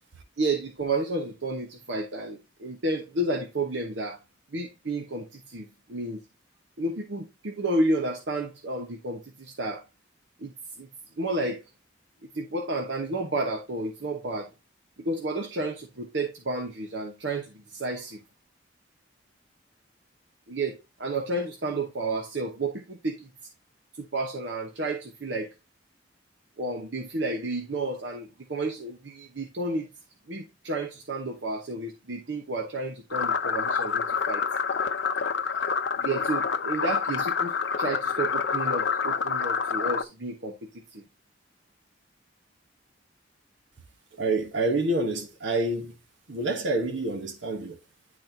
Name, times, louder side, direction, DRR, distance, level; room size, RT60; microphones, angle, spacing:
voice 1, 0.4-4.2 4.5-6.3 6.8-9.8 10.4-10.9 11.2-11.6 12.3-14.5 15.0-18.2 20.5-23.3 24.0-25.5 26.6-30.0 30.3-34.4 36.0-41.0, right 2 dB, 75° right, 0.9 m, -31 dB
sound 1, 33.1-40.0, left 6 dB, 75° left, 0.7 m, -27 dB
voice 2, 44.2-45.9 46.3-47.8, right 2 dB, 90° right, 1.3 m, -27 dB
10.5 x 4.2 x 2.7 m
head